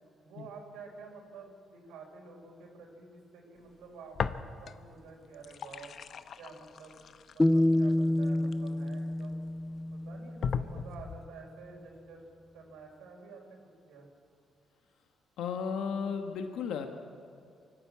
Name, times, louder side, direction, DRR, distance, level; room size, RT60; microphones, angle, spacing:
voice 1, 0.2-5.9 6.4-7.0 7.3-9.4 9.9-12.2 12.5-13.6 13.9-14.1, right 4 dB, 90° right, 0 dB, 4.2 m, -50 dB
sound 1, 4.1-4.9 5.2-9.2 9.8-9.9 10.4-11.3, left 6 dB, 55° left, 0.8 m, -37 dB
sound 2, 7.4-10.5, left 1 dB, 15° left, 0.5 m, -28 dB
voice 2, 15.4-16.9, left 6 dB, 80° left, 5 dB, 1.4 m, -34 dB
25.0 x 12.5 x 8.6 m, 2.3 s
cardioid pair, 90°, 0 cm